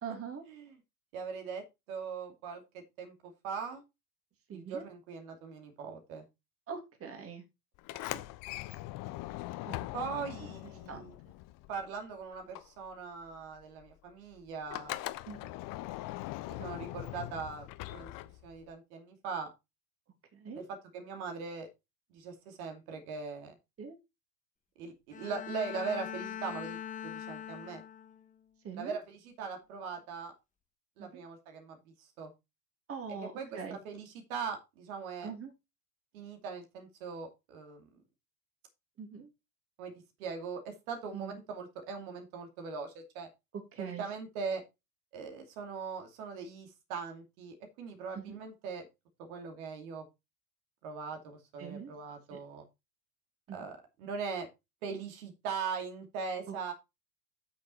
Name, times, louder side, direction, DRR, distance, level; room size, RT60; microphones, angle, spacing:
voice 1, 0.0-0.4 4.5-4.9 6.7-7.4 7.9-8.2 9.6-9.9 10.9-11.1 15.3-15.5 20.3-20.6 23.8-24.0 28.6-29.0 31.0-31.2 32.9-33.8 35.2-35.5 39.0-39.3 41.1-41.4 43.7-44.1 48.1-48.4 51.6-51.9 52.3-52.4 53.5-53.6 56.5-56.6, right 6 dB, 30° right, 6 dB, 2.8 m, -43 dB
voice 2, 1.1-3.8 4.5-6.3 9.9-11.1 11.7-15.0 16.4-18.1 18.4-19.5 20.5-21.7 22.1-23.5 24.8-27.8 28.8-30.3 31.0-32.3 33.4-35.3 36.1-37.9 39.8-39.9 40.2-43.3 43.8-44.6 45.1-48.9 49.2-50.0 50.8-52.6 53.5-54.5 54.8-56.7, right 5 dB, 65° right, 4 dB, 2.7 m, -40 dB
Sliding door, 7.8-12.1 12.3-18.7, left 17 dB, 45° left, 1.0 m, -41 dB
Bowed string instrument, 25.1-28.3, left 9 dB, 15° left, 1.5 m, -42 dB
8.6 x 6.3 x 4.3 m, 0.24 s
hypercardioid pair, 95°, 47 cm